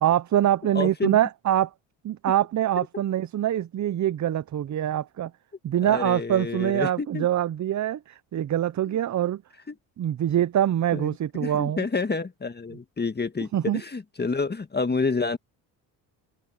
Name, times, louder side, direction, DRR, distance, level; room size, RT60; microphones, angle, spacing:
voice 1, 0.0-1.7 2.0-5.3 5.6-9.4 10.0-11.9 13.5-13.8, right 11 dB, 40° right, 0.8 m, -24 dB
voice 2, 0.7-1.2 5.9-7.3 8.9-9.0 9.7-9.8 10.9-15.4, left 4 dB, 20° left, 1.8 m, -29 dB
open air
supercardioid pair, 75°, 44 cm